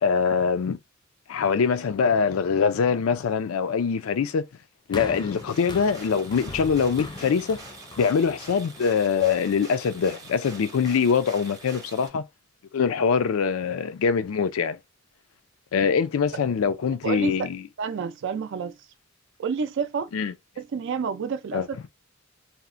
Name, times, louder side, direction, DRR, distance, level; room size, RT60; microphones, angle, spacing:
voice 1, 0.0-0.8 1.3-4.4 4.9-7.6 8.0-12.2 12.7-14.8 15.7-17.6 20.1-20.3 21.5-21.7, left 6 dB, 85° left, 0.4 m, -23 dB
sound 1, 4.9-9.3 10.1-10.2, left 2 dB, 20° left, 0.4 m, -40 dB
sound 2, 5.1-12.1, right 2 dB, 20° right, 0.7 m, -45 dB
voice 2, 17.8-18.8 19.4-20.1 20.6-21.9, right 6 dB, 60° right, 0.4 m, -29 dB
2.7 x 2.0 x 2.4 m
head